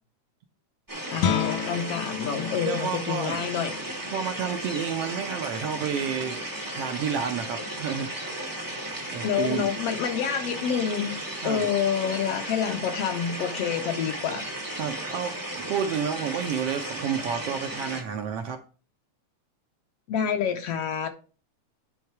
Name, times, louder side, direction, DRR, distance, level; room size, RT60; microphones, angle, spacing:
sound 1, 0.9-18.0, right 1 dB, 20° right, 0.5 m, -35 dB
voice 1, 1.1-3.7 9.2-11.1 11.4-14.5 20.1-21.1, left 8 dB, 65° left, 5 dB, 1.7 m, -28 dB
Guitar, 1.2-6.7, left 8 dB, 80° left, 2.2 m, -34 dB
voice 2, 2.7-3.4 4.1-6.4 6.7-8.4 9.1-9.7 11.4-11.7 14.8-18.6, right 7 dB, 70° right, 5 dB, 1.6 m, -30 dB
10.5 x 3.8 x 4.6 m, 0.36 s
omnidirectional pair, 3.3 m